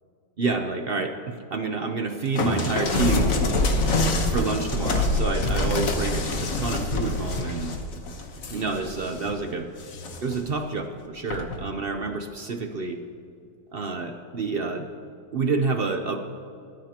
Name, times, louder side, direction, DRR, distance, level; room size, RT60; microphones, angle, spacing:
voice 1, 0.4-7.7 8.5-9.7 10.2-13.0 13.7-14.9 15.3-16.2, right 4 dB, 75° right, 5 dB, 0.5 m, -29 dB
sound 1, 2.4-9.3 9.8-10.4 11.3-11.6, left 2 dB, 50° left, 1.4 m, -25 dB
20.5 x 13.5 x 2.9 m, 2.5 s
omnidirectional pair, 2.1 m